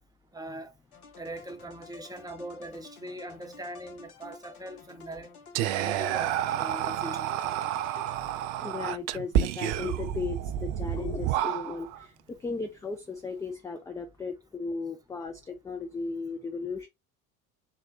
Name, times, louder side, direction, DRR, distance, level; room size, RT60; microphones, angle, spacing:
voice 1, 0.3-0.7 1.2-5.3 5.8-7.3, right 1 dB, 10° right, 0.7 m, -41 dB
sound 1, 0.9-8.6, left 5 dB, 85° left, 0.6 m, -51 dB
Whispering, 5.5-12.0, right 11 dB, 55° right, 0.5 m, -30 dB
voice 2, 8.6-16.9, left 4 dB, 10° left, 0.3 m, -36 dB
3.7 x 2.1 x 3.8 m
figure-of-eight pair, 60°, 42 cm